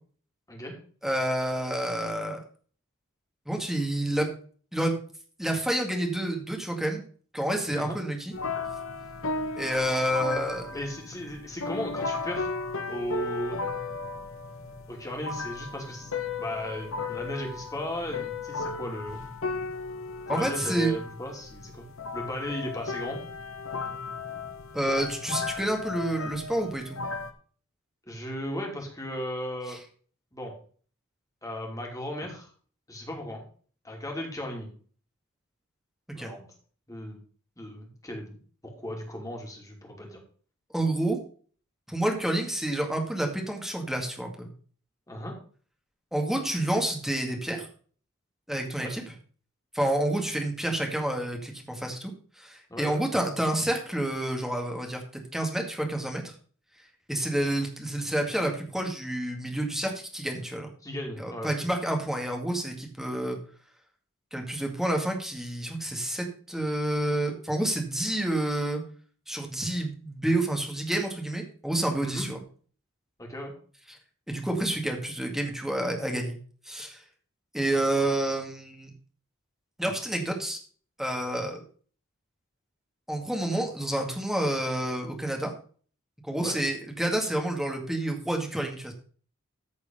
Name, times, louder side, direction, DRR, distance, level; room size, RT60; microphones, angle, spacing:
voice 1, 1.0-2.4 3.5-4.3 4.7-4.9 5.4-7.0 7.3-8.3 9.6-10.7 20.3-20.9 24.7-27.0 29.7-29.8 36.2-36.3 40.7-41.2 41.9-44.5 46.1-47.7 48.5-49.0 49.7-52.1 52.4-56.3 57.1-60.7 61.2-63.4 64.3-68.8 69.3-72.4 73.9-74.0 74.3-76.4 76.7-77.0 77.5-78.9 79.8-80.6 81.0-81.6 83.1-85.5 86.2-88.9, right 1 dB, ahead, 2 dB, 2.1 m, -29 dB
sound 1, 8.3-27.3, left 4 dB, 65° left, 1.3 m, -35 dB
voice 2, 10.7-12.5 12.9-13.6 14.9-16.1 16.4-19.2 20.3-21.9 22.1-23.2 28.1-29.8 30.3-30.5 31.4-32.5 32.9-33.4 33.8-34.7 36.1-36.5 36.9-37.2 37.6-38.4 38.6-40.2 45.1-45.3 48.8-48.9 52.7-53.0 60.8-61.6 72.0-72.3 73.2-73.5 77.7-78.1 86.4-86.6, equal, 15° left, 1 dB, 2.9 m, -36 dB
14.0 x 4.8 x 5.4 m, 0.44 s
head